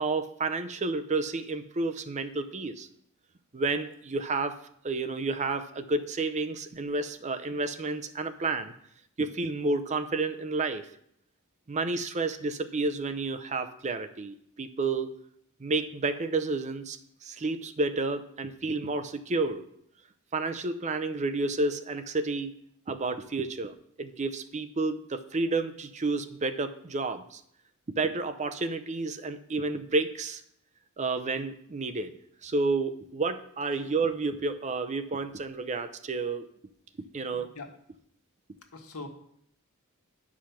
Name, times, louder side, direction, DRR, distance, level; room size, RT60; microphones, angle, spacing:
voice 1, 0.0-2.9 3.5-4.6 4.8-8.7 9.2-10.9 11.7-15.1 15.6-19.6 20.3-22.5 22.9-27.4 27.9-30.4 31.0-36.5 37.1-37.5, right 3 dB, 35° right, 9 dB, 0.5 m, -30 dB
voice 2, 37.3-37.7 38.7-39.1, left 3 dB, 85° left, 3 dB, 1.4 m, -43 dB
10.0 x 4.9 x 5.8 m, 0.70 s
head